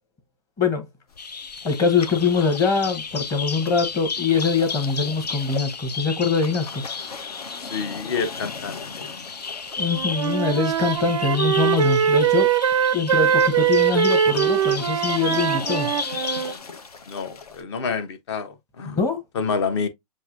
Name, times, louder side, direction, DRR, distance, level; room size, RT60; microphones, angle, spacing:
sound 1, 1.1-17.6, left 4 dB, 70° left, 0.8 m, -41 dB
Bird vocalization bird call bird song, 1.2-16.6, left 5 dB, 85° left, 0.5 m, -33 dB
voice 1, 1.6-6.8 9.8-12.5 12.9-15.9 18.8-19.2, left 5 dB, 15° left, 1.0 m, -23 dB
voice 2, 7.6-9.1 17.1-19.0 19.3-19.9, left 5 dB, 45° left, 0.9 m, -28 dB
Wind instrument woodwind instrument, 9.8-16.5, right 9 dB, 55° right, 0.4 m, -22 dB
6.9 x 2.6 x 2.5 m
figure-of-eight pair, 120°, 20 cm